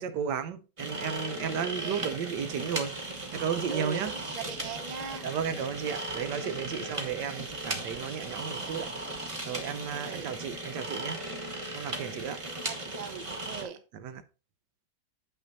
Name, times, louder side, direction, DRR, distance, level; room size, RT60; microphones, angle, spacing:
voice 1, 0.0-2.9 3.3-4.1 5.2-8.9 9.5-11.2 11.7-12.4 14.0-14.2, right 7 dB, 75° right, 1.3 m, -34 dB
sound 1, 0.8-13.6, right 2 dB, 20° right, 1.0 m, -37 dB
voice 2, 1.6-2.2 3.7-5.3 6.7-7.1 10.0-10.3 12.0-13.8, right 7 dB, 40° right, 0.6 m, -41 dB
sound 2, 3.8-9.8, right 7 dB, 55° right, 1.1 m, -51 dB
7.7 x 5.7 x 4.1 m
omnidirectional pair, 1.9 m